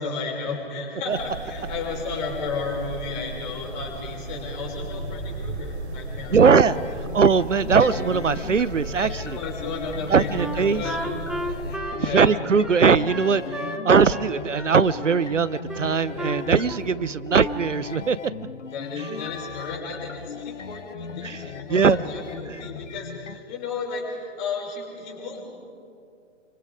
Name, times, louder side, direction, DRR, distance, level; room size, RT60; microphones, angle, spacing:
voice 1, 0.0-6.5 6.9-7.0 7.7-7.9 9.0-11.0 11.4-12.4 18.7-25.4, left 4 dB, 40° left, -1 dB, 5.9 m, -33 dB
sound 1, 1.1-11.8, right 2 dB, 60° right, 3.0 m, -35 dB
sound 2, 6.2-23.4, left 6 dB, 75° left, 0.9 m, -38 dB
voice 2, 6.3-9.2 10.1-10.8 12.1-18.2 21.2-21.4 21.7-22.1, right 5 dB, 80° right, 17 dB, 0.8 m, -20 dB
Wind instrument woodwind instrument, 10.4-13.8 14.1-15.3 15.7-17.0 17.3-17.8, right 1 dB, ahead, 1.2 m, -34 dB
30.0 x 24.5 x 5.1 m, 2.5 s
figure-of-eight pair, 120°, 37 cm